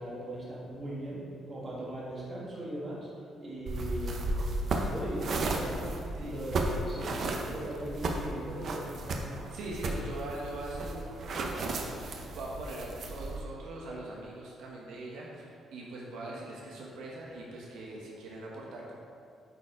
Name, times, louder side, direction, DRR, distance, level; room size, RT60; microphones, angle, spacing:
voice 1, 0.0-3.1 3.4-4.3 4.7-9.4, right 1 dB, 25° right, -6 dB, 1.6 m, -39 dB
sound 1, 3.7-13.4, right 2 dB, 40° right, 0.6 m, -34 dB
voice 2, 9.5-18.9, right 1 dB, 75° right, -3 dB, 1.0 m, -41 dB
8.6 x 4.3 x 3.7 m, 2.4 s
cardioid pair, 165°, 0 cm